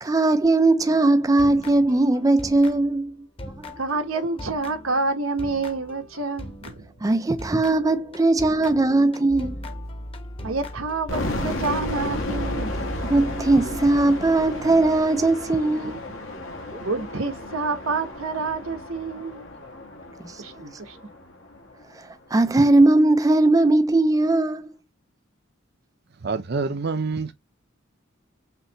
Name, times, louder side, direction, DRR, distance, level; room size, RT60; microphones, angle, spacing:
voice 1, 0.0-3.2 3.6-3.7 7.0-9.6 13.0-16.0 16.7-16.8 20.2-20.4 22.0-24.7, right 2 dB, 15° right, 0.4 m, -19 dB
sound 1, 1.2-3.1 3.4-7.0 7.4-12.0, left 1 dB, 25° left, 1.0 m, -41 dB
voice 2, 3.8-6.8 10.4-12.7 14.6-14.9 15.8-16.2 16.8-19.5 20.4-21.0, right 3 dB, 85° right, 1.2 m, -28 dB
sound 2, 9.3-14.6, equal, 50° left, 1.2 m, -37 dB
sound 3, 11.1-22.0, left 1 dB, 70° left, 1.5 m, -33 dB
voice 3, 26.2-27.3, right 4 dB, 55° right, 0.7 m, -26 dB
5.7 x 2.9 x 2.9 m
head